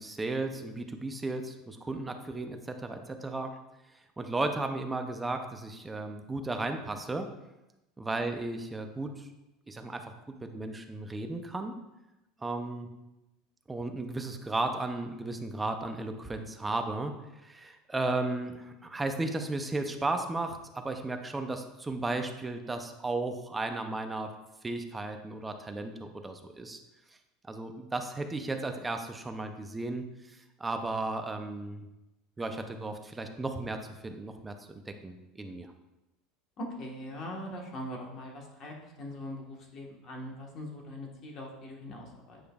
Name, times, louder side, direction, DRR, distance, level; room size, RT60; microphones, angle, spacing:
voice 1, 0.0-3.5 4.2-7.3 8.0-9.3 9.7-11.8 12.4-12.9 13.7-17.1 17.4-24.3 24.6-26.8 27.5-30.1 30.6-31.9 32.4-34.5 34.9-35.7, right 2 dB, 10° right, 6 dB, 0.5 m, -34 dB
voice 2, 36.6-42.4, left 1 dB, 35° left, 1 dB, 1.3 m, -41 dB
9.0 x 5.0 x 2.3 m, 0.96 s
supercardioid pair, 150°, 0 cm